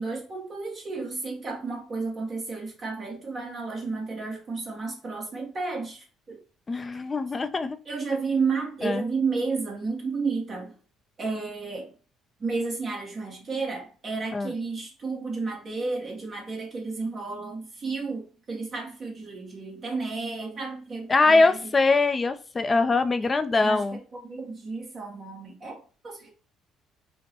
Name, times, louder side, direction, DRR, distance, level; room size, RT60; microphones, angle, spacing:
voice 1, 0.0-6.4 7.8-10.7 11.2-11.9 12.4-21.7 23.6-26.3, right 4 dB, 35° right, 1.0 m, -32 dB
voice 2, 6.7-7.8 8.8-9.0 14.3-14.5 21.1-24.0, left 3 dB, 20° left, 0.4 m, -22 dB
5.2 x 2.1 x 2.8 m
cardioid pair, 130°, 0 cm